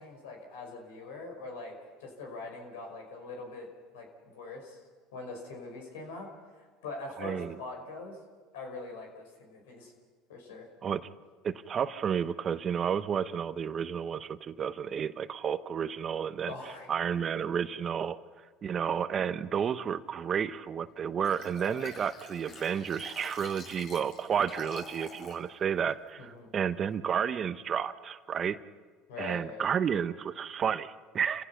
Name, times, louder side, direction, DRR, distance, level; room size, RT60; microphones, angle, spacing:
voice 1, 0.0-1.7 2.0-3.7 3.9-4.8 5.1-8.2 8.5-9.9 10.3-10.7 16.5-16.9 26.2-26.5 29.1-29.7, left 3 dB, 80° left, 2 dB, 5.3 m, -43 dB
voice 2, 7.2-7.6 10.8-11.0 11.4-16.5 16.9-18.2 18.6-28.6 29.2-31.4, right 7 dB, 40° right, 13 dB, 0.9 m, -31 dB
Liquid, 21.2-25.4 25.9-26.0, left 3 dB, 50° left, 7.0 m, -46 dB
29.5 x 16.0 x 5.8 m, 1.5 s
hypercardioid pair, 80°, 0 cm